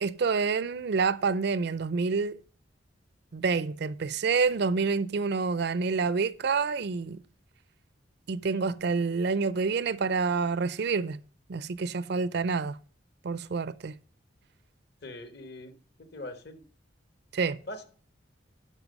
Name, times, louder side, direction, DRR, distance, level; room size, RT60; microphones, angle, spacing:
voice 1, 0.0-2.4 3.3-7.2 8.3-11.2 11.5-12.8 13.2-13.9 17.3-17.6, right 4 dB, 60° right, 0.5 m, -28 dB
voice 2, 15.0-16.6 17.7-17.8, left 1 dB, 60° left, 1.3 m, -42 dB
11.0 x 5.7 x 5.2 m
head